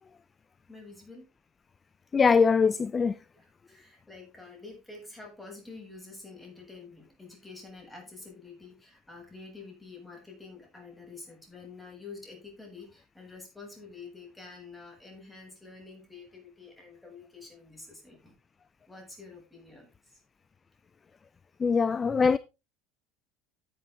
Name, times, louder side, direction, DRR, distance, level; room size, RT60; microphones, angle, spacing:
voice 1, 0.7-1.3 3.3-18.3 18.9-20.2, left 3 dB, 10° left, 7.4 m, -48 dB
voice 2, 2.1-3.2 21.6-22.4, left 5 dB, 25° left, 0.5 m, -22 dB
13.5 x 8.3 x 3.8 m
figure-of-eight pair, 70°, 0 cm